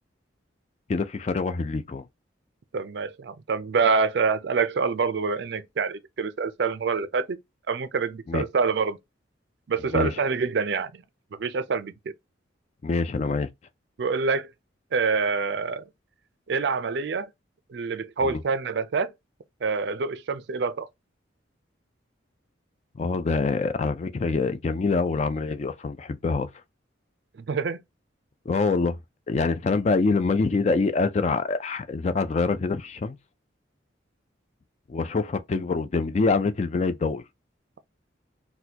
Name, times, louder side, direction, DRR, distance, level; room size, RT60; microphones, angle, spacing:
voice 1, 0.9-2.0 8.3-8.4 9.9-10.1 12.8-13.5 18.2-18.4 23.0-26.5 28.5-29.0 29.3-33.2 34.9-37.2, left 4 dB, 35° left, 0.3 m, -25 dB
voice 2, 2.7-7.4 7.7-9.0 9.7-11.0 11.3-12.1 14.0-14.5 14.9-15.9 16.5-17.3 17.7-19.1 19.6-20.9 27.4-27.8, right 5 dB, 60° right, 0.4 m, -26 dB
4.1 x 2.2 x 2.7 m
head